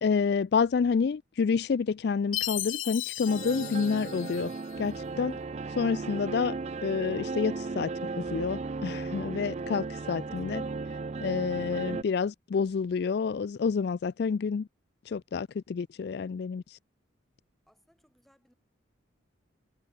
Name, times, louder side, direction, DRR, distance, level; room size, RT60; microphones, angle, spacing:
voice 1, 0.0-4.5 4.8-5.4 5.8-10.6 11.2-14.7 15.1-16.8, left 5 dB, 55° left, 0.3 m, -29 dB
Chime, 2.3-4.8, left 16 dB, 85° left, 1.0 m, -36 dB
sound 1, 3.3-12.0, right 4 dB, 35° right, 0.4 m, -35 dB
voice 2, 10.0-10.3 17.7-18.5, equal, ahead, 4.4 m, -64 dB
head